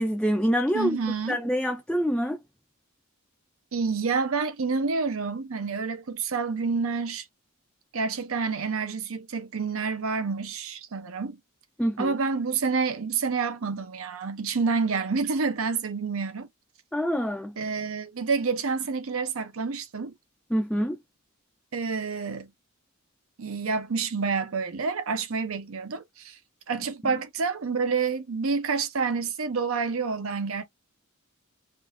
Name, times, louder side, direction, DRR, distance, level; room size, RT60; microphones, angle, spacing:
voice 1, 0.0-1.0 1.3-2.4 11.8-12.2 16.9-17.6 20.5-21.0, equal, 5° left, 0.4 m, -26 dB
voice 2, 0.7-1.4 3.7-7.3 7.9-11.4 12.0-16.5 17.6-20.1 21.7-22.5 23.4-26.4 26.7-30.6, right 5 dB, 75° right, 0.7 m, -28 dB
3.7 x 2.3 x 2.5 m
head